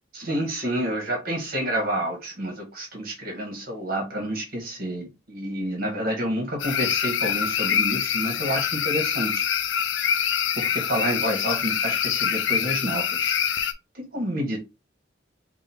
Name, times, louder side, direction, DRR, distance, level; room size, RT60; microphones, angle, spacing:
voice 1, 0.1-9.5 10.5-13.4 13.9-14.6, equal, 55° right, 1.5 m, -29 dB
sound 1, 6.6-13.7, left 8 dB, 85° left, 0.6 m, -25 dB
5.3 x 2.4 x 3.6 m
head